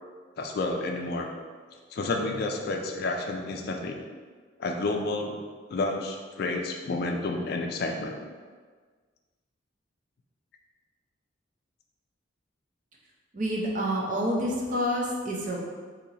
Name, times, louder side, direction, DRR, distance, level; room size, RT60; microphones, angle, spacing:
voice 1, 0.4-1.3 1.9-4.0 4.6-5.4 5.7-8.2 14.5-14.6, left 2 dB, 55° left, 3 dB, 0.4 m, -30 dB
voice 2, 13.3-15.6, equal, 45° right, -2 dB, 0.6 m, -28 dB
2.8 x 2.8 x 4.0 m, 1.5 s
head